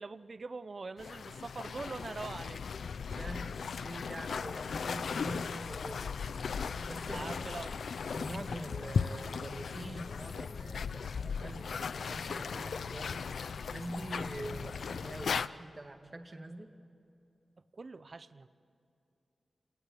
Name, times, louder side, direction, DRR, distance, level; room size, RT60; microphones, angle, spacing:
voice 1, 0.0-2.6 3.1-3.4 7.0-7.7 17.7-18.5, right 3 dB, 45° right, 14 dB, 0.6 m, -43 dB
sound 1, 1.0-15.5, left 6 dB, 85° left, 0.5 m, -37 dB
voice 2, 3.0-6.0 6.8-7.3 7.7-13.3 13.7-16.7, right 1 dB, 25° right, 5 dB, 1.8 m, -45 dB
27.5 x 19.0 x 8.4 m, 2.6 s
wide cardioid pair, 135°, 0 cm